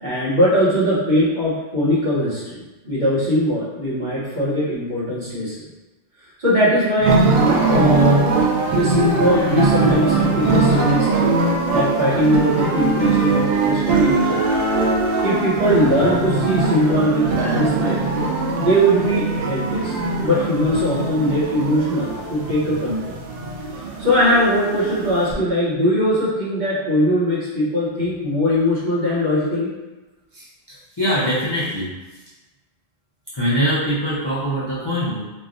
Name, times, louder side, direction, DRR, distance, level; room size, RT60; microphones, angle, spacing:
voice 1, 0.0-5.6 6.4-7.2 7.7-8.2 8.7-11.3 11.7-14.5 15.2-18.1 18.6-19.9 20.2-23.2 24.0-29.7, equal, 45° right, -9 dB, 1.0 m, -20 dB
sound 1, 7.0-25.3, right 3 dB, 70° right, 0.7 m, -21 dB
Organ, 9.2-14.1, left 3 dB, 80° left, 0.8 m, -39 dB
voice 2, 30.3-31.9 33.3-35.2, equal, 30° left, -10 dB, 0.5 m, -23 dB
3.2 x 2.3 x 2.5 m, 1.1 s
omnidirectional pair, 1.1 m